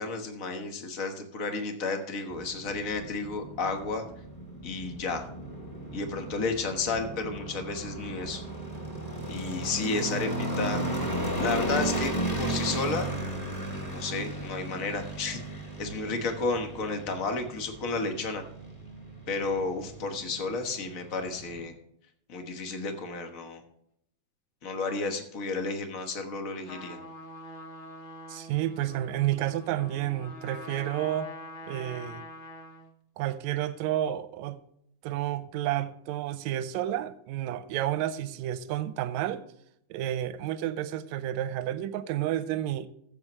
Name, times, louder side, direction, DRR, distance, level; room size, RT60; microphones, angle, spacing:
voice 1, 0.0-4.1 4.6-5.2 5.9-8.4 9.3-10.8 11.4-13.1 13.8-18.4 19.3-21.7 22.3-23.6 24.6-27.0, left 3 dB, 55° left, 0.9 m, -32 dB
sound 1, 2.3-21.7, right 1 dB, 5° left, 2.4 m, -35 dB
Trumpet, 26.6-32.9, left 1 dB, 80° left, 0.6 m, -44 dB
voice 2, 28.3-31.3 31.7-32.2 33.2-34.6 35.0-39.4 39.9-42.9, right 12 dB, 80° right, 1.9 m, -30 dB
14.0 x 8.2 x 3.0 m
omnidirectional pair, 3.4 m